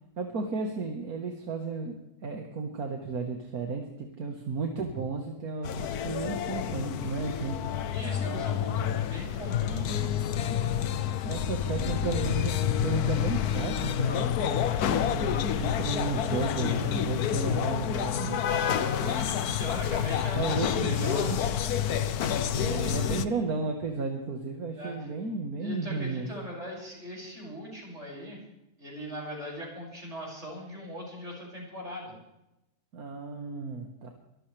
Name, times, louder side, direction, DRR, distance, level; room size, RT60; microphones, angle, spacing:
voice 1, 0.2-1.9 2.2-7.6 11.2-14.4 14.9-18.4 20.3-21.4 22.6-26.3 32.9-34.1, right 4 dB, 75° right, 3 dB, 2.0 m, -33 dB
sound 1, 5.6-23.3, left 9 dB, 85° left, 1.3 m, -28 dB
voice 2, 7.9-10.1 18.4-21.8 22.5-23.3 24.7-25.1 25.6-28.4 28.8-32.1, equal, 50° right, -3 dB, 6.8 m, -40 dB
23.5 x 14.5 x 3.4 m, 0.88 s
omnidirectional pair, 1.6 m